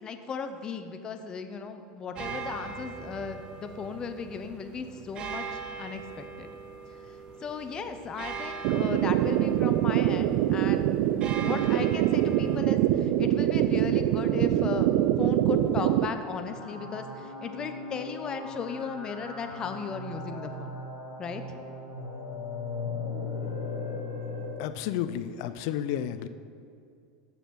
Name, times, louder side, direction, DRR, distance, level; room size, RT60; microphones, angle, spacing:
voice 1, 0.0-6.5 7.4-10.9 11.4-20.7 21.2-21.4, left 5 dB, 30° left, 8 dB, 0.8 m, -36 dB
sound 1, 2.2-12.6, right 5 dB, 40° right, 0.8 m, -41 dB
sound 2, 8.6-16.1, right 13 dB, 65° right, 0.4 m, -24 dB
sound 3, 16.4-24.5, left 3 dB, 85° left, 2.5 m, -37 dB
voice 2, 24.6-26.3, left 10 dB, 65° left, 13 dB, 0.5 m, -31 dB
7.3 x 7.0 x 6.1 m, 2.5 s
hypercardioid pair, 100°, 2 cm